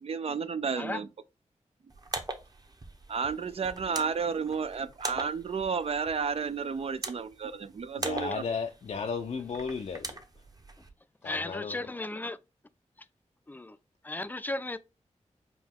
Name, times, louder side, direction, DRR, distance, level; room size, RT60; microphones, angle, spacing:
voice 1, 0.0-1.1 3.1-8.4, right 5 dB, 55° right, 0.4 m, -32 dB
sound 1, 1.9-10.9, right 2 dB, 35° right, 0.8 m, -42 dB
voice 2, 8.0-10.1 11.2-11.8, left 5 dB, 65° left, 0.5 m, -34 dB
voice 3, 11.2-12.4 13.5-13.8 14.0-14.8, left 2 dB, 15° left, 0.4 m, -35 dB
5.2 x 2.3 x 3.5 m
cardioid pair, 60°, 12 cm